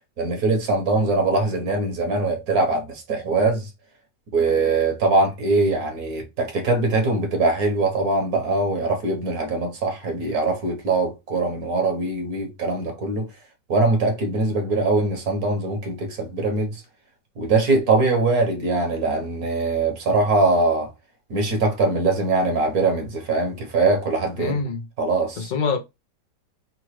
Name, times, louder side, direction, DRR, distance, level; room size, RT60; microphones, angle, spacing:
voice 1, 0.2-3.7 4.3-13.3 13.7-16.8 17.4-20.9 21.3-24.6 25.0-25.5, right 3 dB, 60° right, 1.5 m, -22 dB
voice 2, 24.4-24.9 25.4-25.8, left 5 dB, 50° left, 0.6 m, -25 dB
3.9 x 2.4 x 4.6 m
omnidirectional pair, 1.9 m